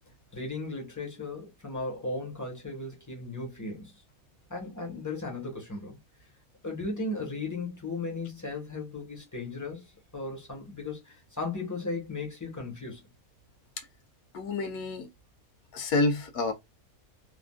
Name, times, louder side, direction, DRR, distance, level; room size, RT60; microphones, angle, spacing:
voice 1, 0.3-3.9 4.5-6.0 6.6-9.9 10.1-13.0, left 3 dB, 15° left, 0.9 m, -36 dB
voice 2, 14.3-15.1 15.7-16.5, left 3 dB, 85° left, 1.2 m, -28 dB
3.4 x 2.4 x 2.2 m
omnidirectional pair, 1.6 m